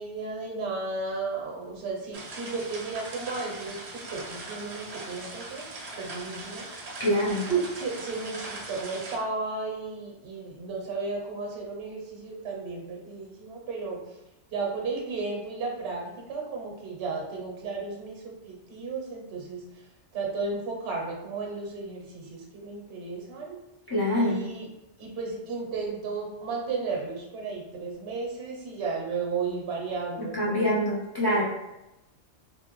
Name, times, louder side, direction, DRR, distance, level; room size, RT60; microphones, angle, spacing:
voice 1, 0.0-5.7 6.0-7.0 7.5-14.0 14.5-23.6 24.1-24.7 25.0-30.8, right 4 dB, 70° right, -1 dB, 1.0 m, -34 dB
sound 1, 2.1-9.2, right 2 dB, 50° right, 0.4 m, -40 dB
voice 2, 7.0-7.5 23.9-24.4 30.3-31.4, equal, 30° left, -7 dB, 0.5 m, -25 dB
3.0 x 2.2 x 2.9 m, 0.93 s
omnidirectional pair, 1.2 m